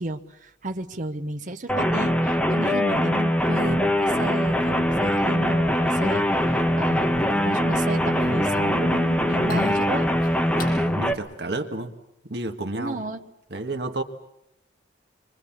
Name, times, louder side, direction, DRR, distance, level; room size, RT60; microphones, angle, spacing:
voice 1, 0.0-10.1 12.7-13.2, right 1 dB, 45° right, 6 dB, 1.0 m, -32 dB
sound 1, 1.7-11.1, equal, 5° left, 1.5 m, -22 dB
sound 2, 4.4-10.7, left 1 dB, 50° left, 7.9 m, -37 dB
voice 2, 10.6-12.0 12.2-13.0 13.5-14.0, right 2 dB, 60° right, 5 dB, 1.6 m, -31 dB
26.5 x 23.0 x 7.3 m, 0.79 s
head